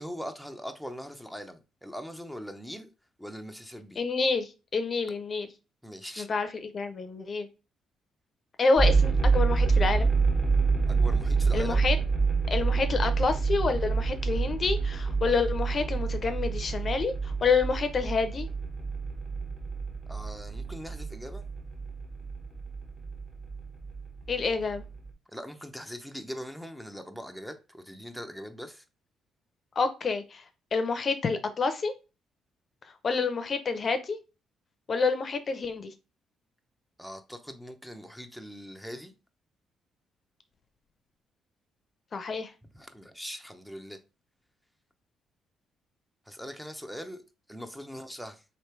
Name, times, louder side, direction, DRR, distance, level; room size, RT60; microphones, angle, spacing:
voice 1, 0.0-2.9 3.2-4.0 5.8-6.3 10.9-11.9 20.1-21.5 25.3-28.8 37.0-39.1 42.7-44.0 46.3-47.2 47.5-48.4, equal, ahead, 0.7 m, -41 dB
voice 2, 4.0-5.5 6.2-6.5 6.7-7.5 8.6-10.1 11.5-12.0 12.5-18.5 24.3-24.8 29.8-30.4 30.7-31.9 33.0-34.2 34.9-35.9 42.1-42.5, left 4 dB, 45° left, 0.6 m, -28 dB
sound 1, 8.8-25.1, right 4 dB, 30° right, 1.6 m, -27 dB
3.1 x 2.9 x 4.5 m
supercardioid pair, 70°, 0 cm